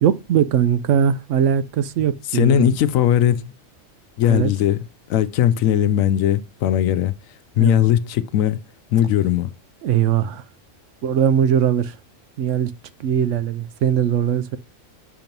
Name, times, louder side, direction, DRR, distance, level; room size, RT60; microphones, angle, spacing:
voice 1, 0.0-2.7 4.3-4.5 7.6-7.8 9.8-10.4 11.0-12.0 12.4-12.7 13.0-14.6, right 9 dB, 70° right, 0.9 m, -20 dB
voice 2, 2.3-3.5 4.2-4.8 5.1-7.1 7.6-8.6 8.9-9.5, left 10 dB, 80° left, 1.0 m, -18 dB
7.1 x 2.9 x 5.2 m
omnidirectional pair, 1.4 m